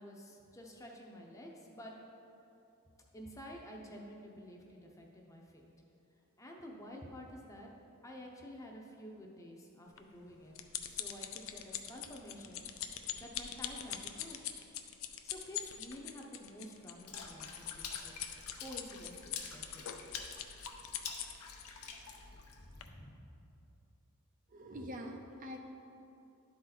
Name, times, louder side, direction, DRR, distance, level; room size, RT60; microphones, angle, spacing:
voice 1, 0.0-1.9 3.1-5.7 6.4-7.7 8.0-10.6 10.9-12.6 13.2-14.4 15.3-18.1 18.6-20.0 22.6-23.3, equal, 15° left, -1 dB, 0.7 m, -50 dB
sound 1, 10.0-21.6 22.3-22.5 22.8-22.9, left 10 dB, 60° left, 0.4 m, -43 dB
Water / Splash splatter, 17.1-22.9, left 5 dB, 85° left, 0.8 m, -48 dB
voice 2, 24.5-25.6, equal, 35° right, 2 dB, 0.5 m, -44 dB
11.5 x 4.3 x 4.0 m, 2.8 s
head